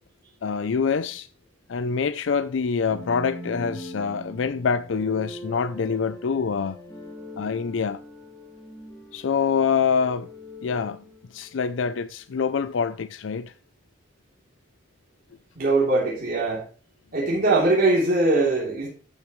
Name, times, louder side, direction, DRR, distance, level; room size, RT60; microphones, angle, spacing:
voice 1, 0.4-1.3 1.7-6.8 7.4-8.0 9.1-10.3 10.6-11.0 11.3-13.5, left 6 dB, 85° left, 0.5 m, -25 dB
sound 1, 2.9-11.8, equal, 10° left, 3.1 m, -42 dB
voice 2, 15.5-16.6 17.1-18.9, right 2 dB, 50° right, 3.3 m, -21 dB
12.0 x 6.9 x 3.1 m
head